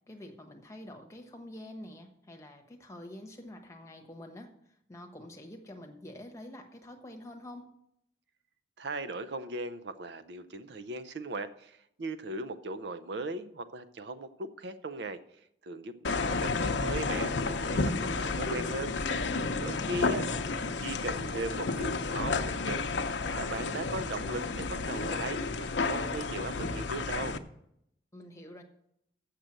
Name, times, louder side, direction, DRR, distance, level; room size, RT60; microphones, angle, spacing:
voice 1, 0.0-7.7 19.8-20.5 28.1-28.6, left 1 dB, 15° left, 3 dB, 1.1 m, -47 dB
voice 2, 8.8-15.2 15.6-18.9 19.6-20.2 20.8-22.9 23.3-27.4, right 2 dB, 70° right, 11 dB, 0.6 m, -38 dB
sound 1, 16.0-27.4, left 3 dB, 80° left, 0.6 m, -31 dB
7.3 x 6.7 x 7.6 m, 0.74 s
head